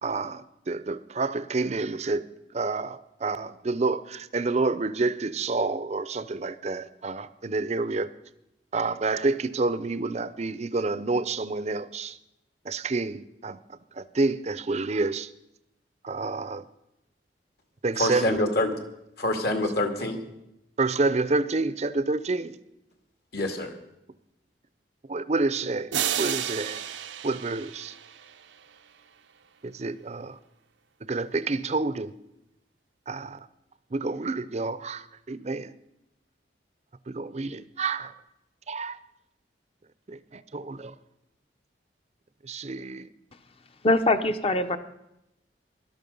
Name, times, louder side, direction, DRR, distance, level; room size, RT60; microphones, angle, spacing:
voice 1, 0.0-2.2 2.5-8.1 8.7-12.1 12.7-13.6 14.0-15.3 16.0-16.6 17.8-18.4 20.8-22.5 25.1-25.9 26.2-26.8 27.2-27.9 29.6-30.4 31.1-32.1 33.1-33.4 33.9-35.7 37.1-38.1 38.7-39.0 40.1-40.9 42.4-43.1, right 3 dB, 40° right, 15 dB, 0.6 m, -28 dB
voice 2, 18.0-18.7 19.2-20.2 23.3-23.7, left 1 dB, 60° left, 5 dB, 2.1 m, -26 dB
sound 1, 25.9-28.8, right 10 dB, 85° right, 0.7 m, -32 dB
voice 3, 43.8-44.8, left 2 dB, 30° left, 9 dB, 0.8 m, -22 dB
17.5 x 12.0 x 5.4 m, 0.87 s
head